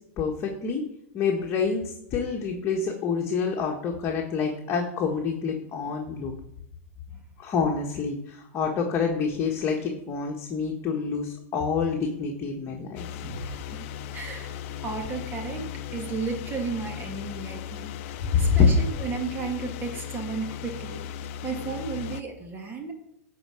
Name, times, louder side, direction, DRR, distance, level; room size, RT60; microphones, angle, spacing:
voice 1, 0.2-0.8 1.1-6.3 7.4-13.0 18.5-18.7, left 6 dB, 35° left, 0 dB, 1.6 m, -27 dB
sound 1, 13.0-22.2, left 9 dB, 55° left, 0.7 m, -37 dB
voice 2, 13.2-14.6 14.8-21.0 21.4-22.9, right 4 dB, 25° right, 3 dB, 2.0 m, -34 dB
12.0 x 4.8 x 7.8 m, 0.76 s
hypercardioid pair, 115°, 8 cm